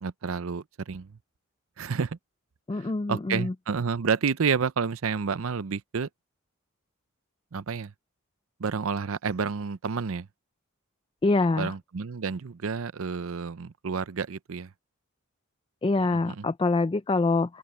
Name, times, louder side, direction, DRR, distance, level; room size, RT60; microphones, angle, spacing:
voice 1, 0.0-1.2 1.8-2.2 2.7-6.1 7.5-7.9 8.6-10.3 11.6-14.7 16.0-16.4, right 5 dB, 70° right, 0.6 m, -30 dB
voice 2, 2.7-3.5 11.2-11.7 15.8-17.6, left 3 dB, 25° left, 0.4 m, -25 dB
open air
head